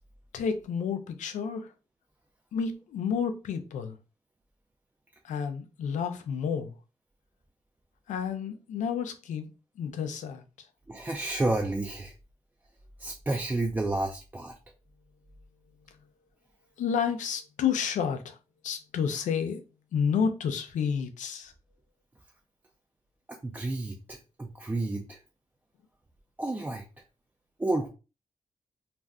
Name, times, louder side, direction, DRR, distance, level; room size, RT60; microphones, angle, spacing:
voice 1, 0.3-1.7 2.5-4.0 5.2-6.7 8.1-9.5 9.8-10.7 16.8-18.4 18.6-19.6 19.9-21.5, left 7 dB, 90° left, 0.5 m, -30 dB
voice 2, 10.9-12.1 13.0-14.5 23.3-25.2 26.4-26.8 27.6-27.9, right 2 dB, 15° right, 0.4 m, -30 dB
2.5 x 2.1 x 3.5 m
cardioid pair, 90°, 12 cm